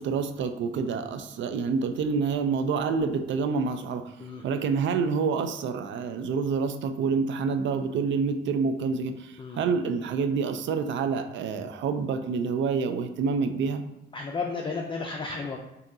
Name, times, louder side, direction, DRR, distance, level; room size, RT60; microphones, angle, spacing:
voice 1, 0.0-13.8, right 5 dB, 70° right, 8 dB, 0.5 m, -27 dB
voice 2, 14.1-15.6, left 4 dB, 25° left, 1 dB, 0.5 m, -33 dB
5.9 x 2.8 x 2.7 m, 0.93 s
cardioid pair, 90°, 20 cm